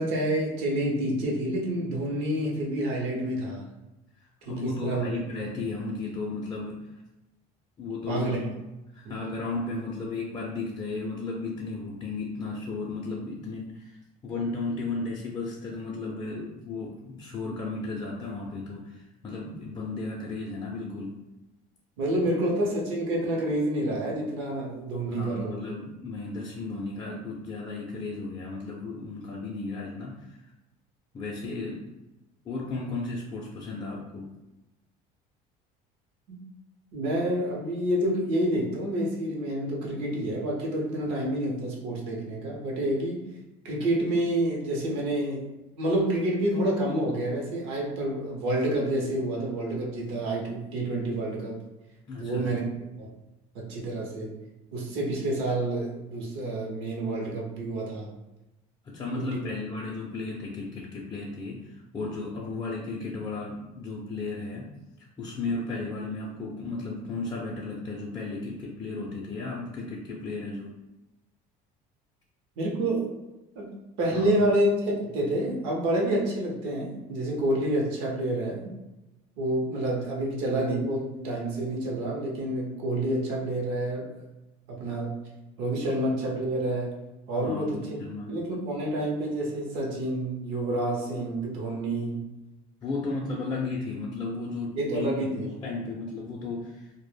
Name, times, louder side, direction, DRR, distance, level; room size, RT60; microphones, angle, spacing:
voice 1, 0.0-3.6 4.5-5.2 8.1-8.4 9.0-9.1 22.0-25.6 36.3-36.4 36.9-43.2 43.6-51.6 52.2-52.6 53.0-53.1 53.5-54.3 54.7-58.1 59.3-59.4 72.6-73.1 73.6-73.7 74.0-78.7 79.4-84.1 84.7-85.2 85.6-87.0 87.3-88.0 88.3-92.2 94.8-95.5, right 1 dB, 85° right, -1 dB, 0.7 m, -28 dB
voice 2, 4.4-6.9 7.8-8.5 8.9-14.0 14.2-21.2 22.4-22.5 25.1-30.4 31.1-31.9 32.4-34.3 52.1-52.6 58.8-64.7 65.2-70.7 74.1-74.5 87.4-88.4 92.8-96.9, left 3 dB, 25° left, -4 dB, 0.4 m, -34 dB
2.1 x 2.0 x 3.2 m, 1.0 s
cardioid pair, 115°, 17 cm